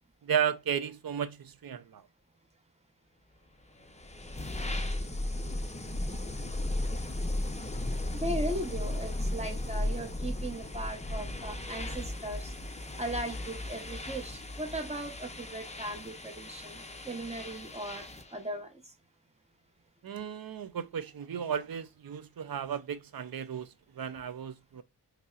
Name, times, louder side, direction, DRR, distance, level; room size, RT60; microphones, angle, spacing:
voice 1, 0.2-2.1 20.0-24.8, right 8 dB, 55° right, 0.5 m, -34 dB
sound 1, 3.8-18.4, left 1 dB, 15° left, 0.5 m, -36 dB
voice 2, 8.1-12.5 13.0-18.1 18.3-18.7, right 1 dB, 15° right, 0.8 m, -38 dB
5.3 x 2.0 x 2.3 m
wide cardioid pair, 60°, 42 cm